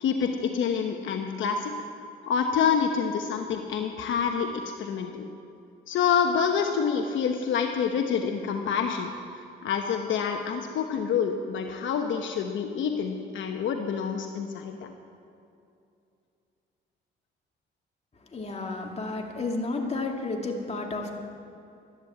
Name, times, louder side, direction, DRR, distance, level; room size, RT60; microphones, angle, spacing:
voice 1, 0.0-1.7 2.3-5.2 5.9-9.1 9.6-14.9, left 6 dB, 75° left, 4 dB, 1.0 m, -27 dB
voice 2, 18.3-21.1, left 3 dB, 35° left, 1 dB, 2.4 m, -31 dB
12.5 x 11.0 x 8.5 m, 2.6 s
cardioid pair, 90°, 20 cm